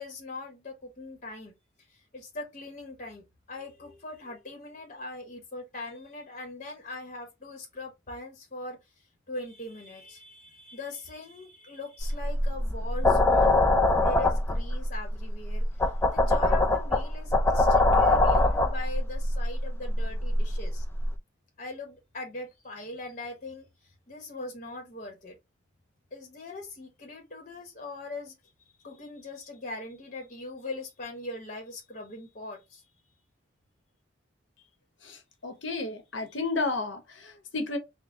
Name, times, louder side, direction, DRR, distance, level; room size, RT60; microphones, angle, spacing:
voice 1, 0.0-1.5 1.9-8.8 9.3-13.6 13.9-20.8 21.6-25.4 26.1-28.3 28.8-32.8, left 2 dB, 40° left, 1.0 m, -41 dB
sound 1, 12.0-21.2, left 2 dB, 10° left, 0.4 m, -24 dB
voice 2, 35.4-37.8, left 3 dB, 65° left, 0.9 m, -32 dB
4.1 x 2.1 x 3.6 m
head